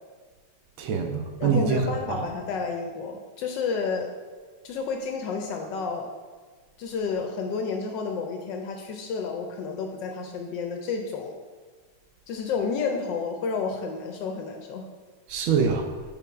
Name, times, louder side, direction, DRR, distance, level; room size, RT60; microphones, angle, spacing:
voice 1, 0.8-2.2 15.3-15.9, right 5 dB, 75° right, 5 dB, 1.4 m, -25 dB
voice 2, 1.4-4.1 4.6-6.1 6.8-11.4 12.3-14.9, left 5 dB, 75° left, 3 dB, 1.1 m, -30 dB
5.3 x 4.6 x 4.6 m, 1.4 s
omnidirectional pair, 2.3 m